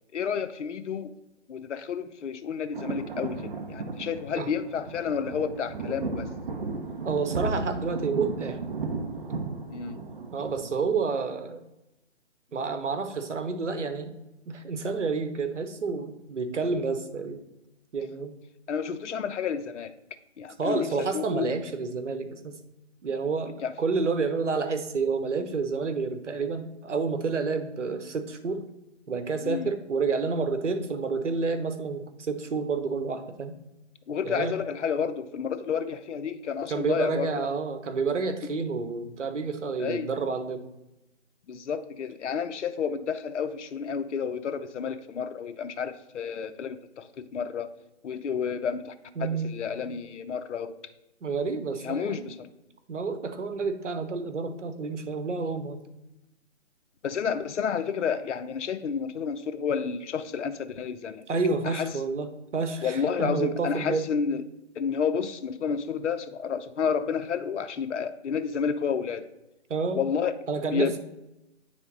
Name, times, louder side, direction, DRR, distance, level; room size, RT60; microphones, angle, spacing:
voice 1, 0.1-1.1 1.5-6.3 9.7-10.0 18.7-19.9 20.4-21.5 23.6-23.7 29.4-29.7 34.1-37.5 39.8-40.1 41.5-47.7 48.0-48.9 49.2-50.7 51.8-52.5 57.0-61.2 61.6-61.9 62.8-64.4 64.8-69.3 69.9-70.3 70.7-71.0, left 6 dB, 75° left, 8 dB, 0.6 m, -30 dB
sound 1, 2.7-11.0, right 4 dB, 45° right, 0.8 m, -35 dB
voice 2, 7.0-8.6 10.3-11.6 12.5-14.1 14.5-17.4 17.9-18.3 20.6-22.6 23.0-28.6 29.1-33.5 34.2-34.6 36.7-40.6 49.2-49.5 51.2-52.3 52.9-55.8 61.3-64.1 69.7-70.0 70.5-71.0, right 4 dB, 80° right, 9 dB, 1.0 m, -29 dB
9.1 x 3.4 x 4.0 m, 0.92 s
hypercardioid pair, 165°, 35 cm